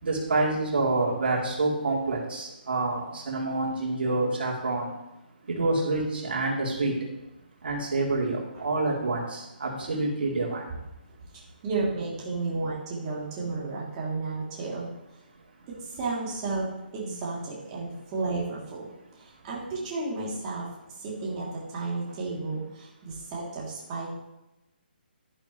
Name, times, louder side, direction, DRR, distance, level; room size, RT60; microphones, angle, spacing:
voice 1, 0.0-4.9 5.4-7.0 7.6-10.6 15.6-15.7, right 2 dB, 75° right, -3 dB, 3.5 m, -27 dB
voice 2, 11.3-14.9 15.9-16.7 16.9-18.9 19.2-20.7 21.0-24.1, right 3 dB, 30° right, -6 dB, 3.1 m, -32 dB
11.0 x 10.5 x 3.2 m, 0.93 s
hypercardioid pair, 155°, 6 cm